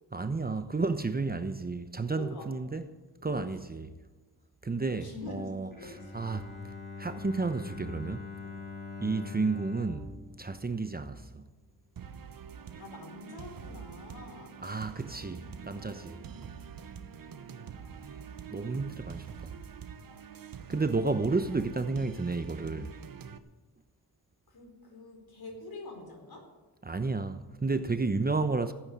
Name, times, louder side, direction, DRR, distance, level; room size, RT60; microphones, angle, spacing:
voice 1, 0.1-2.8 3.2-3.9 4.6-5.7 6.1-6.5 7.0-8.3 9.0-10.1 10.4-11.4 14.6-16.2 18.0-19.5 20.7-22.9 26.8-28.7, right 3 dB, 20° right, 0.9 m, -32 dB
voice 2, 2.1-2.5 3.4-3.6 5.0-6.1 8.4-8.6 12.8-14.5 24.5-26.5, left 3 dB, 60° left, 4.6 m, -45 dB
Bowed string instrument, 5.7-11.7, left 5 dB, 25° left, 3.4 m, -44 dB
sound 1, 12.0-23.4, right 7 dB, 55° right, 1.1 m, -45 dB
14.5 x 9.3 x 8.6 m
cardioid pair, 60°, 41 cm